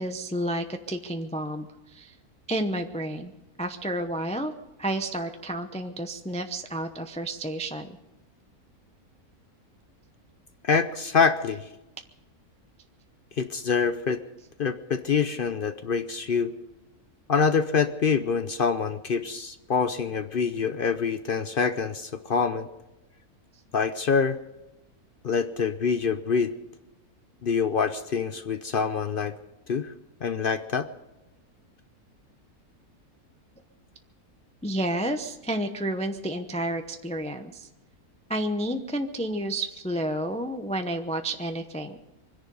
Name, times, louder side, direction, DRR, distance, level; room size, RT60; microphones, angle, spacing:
voice 1, 0.0-2.1 2.5-3.3 3.6-4.5 4.8-8.0 34.6-37.7 38.3-42.0, right 1 dB, 5° left, 6 dB, 0.5 m, -30 dB
voice 2, 10.6-11.7 13.4-14.2 14.6-16.5 17.3-22.7 23.7-24.4 25.2-26.5 27.4-29.4 29.7-29.9 30.2-30.9, left 5 dB, 55° left, 10 dB, 0.6 m, -25 dB
24.5 x 10.5 x 5.4 m, 1.0 s
omnidirectional pair, 1.6 m